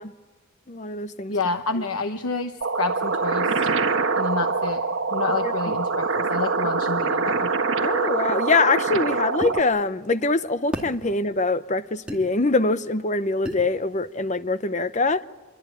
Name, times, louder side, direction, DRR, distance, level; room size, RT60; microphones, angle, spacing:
voice 1, 0.7-1.4 5.4-5.7 7.8-15.2, left 3 dB, 35° left, 0.7 m, -24 dB
voice 2, 1.3-3.7 4.2-4.8 5.1-7.5, left 4 dB, 85° left, 1.0 m, -29 dB
sound 1, 2.6-9.6, right 4 dB, 65° right, 1.5 m, -24 dB
sound 2, 9.4-9.6 10.7-10.9 12.1-12.2 13.4-13.7, equal, 5° right, 2.3 m, -30 dB
25.5 x 23.5 x 9.1 m
head